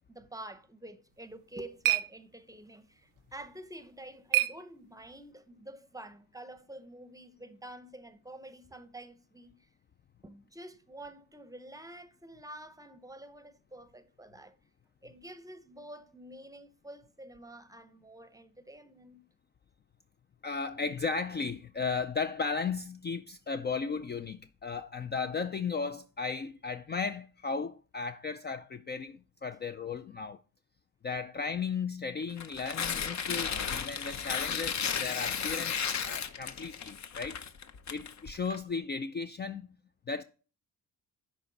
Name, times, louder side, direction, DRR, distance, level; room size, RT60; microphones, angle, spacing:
voice 1, 0.1-9.6 10.2-14.6 15.0-19.3, right 1 dB, 10° right, 0.7 m, -48 dB
sound 1, 1.1-5.3, right 16 dB, 60° right, 0.5 m, -35 dB
voice 2, 20.4-30.4 31.0-37.4 37.9-39.7 40.1-40.2, left 5 dB, 30° left, 0.4 m, -35 dB
Tearing, 32.3-38.6, left 7 dB, 50° left, 0.8 m, -34 dB
11.0 x 4.3 x 4.0 m
cardioid pair, 100°, 36 cm